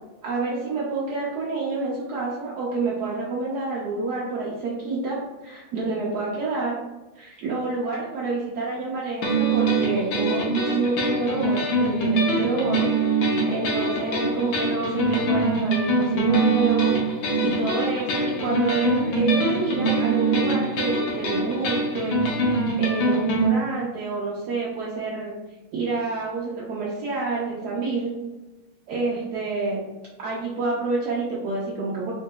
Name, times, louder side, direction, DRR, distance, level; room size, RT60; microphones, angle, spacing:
voice 1, 0.2-6.8 7.1-12.9 13.2-17.0 17.4-25.4 25.7-28.1 28.9-29.8 30.2-32.1, right 3 dB, 80° right, -5 dB, 0.9 m, -28 dB
sound 1, 9.2-23.5, right 2 dB, 70° left, 1.4 m, -23 dB
3.6 x 2.7 x 2.3 m, 1.1 s
omnidirectional pair, 2.3 m